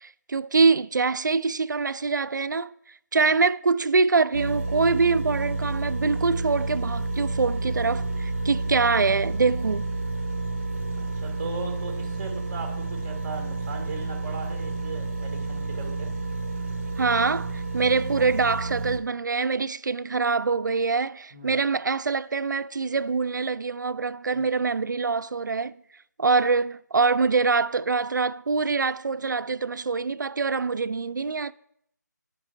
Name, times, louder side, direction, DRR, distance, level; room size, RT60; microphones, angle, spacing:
voice 1, 0.0-2.7 3.1-9.9 17.0-25.8 26.2-31.5, right 4 dB, 85° right, 0.4 m, -24 dB
sound 1, 4.3-19.0, right 3 dB, 40° right, 0.8 m, -30 dB
voice 2, 11.0-16.1 21.3-21.6 24.3-24.4, right 3 dB, 20° right, 1.3 m, -38 dB
9.4 x 5.2 x 4.5 m
figure-of-eight pair, 165°, 10 cm